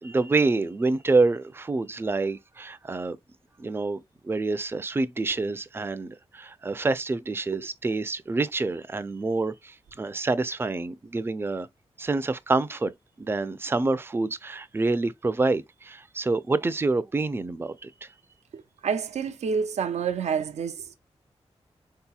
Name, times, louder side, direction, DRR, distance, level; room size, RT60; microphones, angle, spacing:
voice 1, 0.0-3.2 3.6-4.0 4.2-11.7 12.0-12.9 13.2-18.1, right 3 dB, 20° right, 0.4 m, -27 dB
voice 2, 18.5-20.9, right 6 dB, 85° right, 0.4 m, -28 dB
3.8 x 2.8 x 2.3 m
cardioid pair, 60°, 11 cm